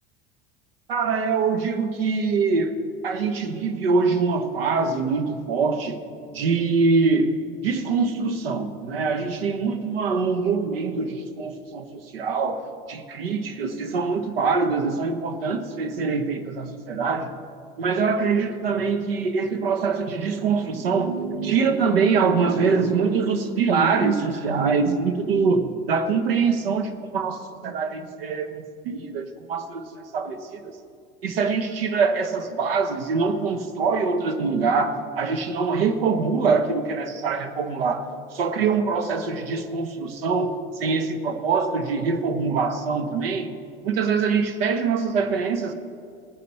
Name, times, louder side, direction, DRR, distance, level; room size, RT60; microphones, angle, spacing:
voice 1, 0.9-2.8 3.0-6.0 6.3-7.4 7.6-12.6 12.9-17.3 17.8-30.7 31.2-43.5 43.8-45.7, right 5 dB, 75° right, 1.1 m, -24 dB
18.5 x 9.4 x 4.2 m
hypercardioid pair, 75°, 29 cm